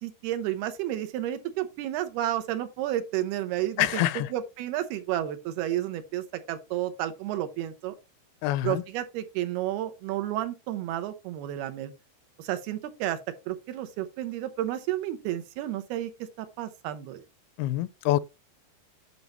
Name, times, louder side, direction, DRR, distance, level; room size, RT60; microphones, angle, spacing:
voice 1, 0.0-4.0 4.3-8.0 8.6-11.9 12.4-13.2 13.5-16.1 16.4-17.2, right 13 dB, 80° right, 2.8 m, -31 dB
voice 2, 3.8-4.3 8.4-8.8 17.6-18.2, left 15 dB, 85° left, 2.4 m, -26 dB
9.4 x 5.4 x 3.0 m
omnidirectional pair, 4.5 m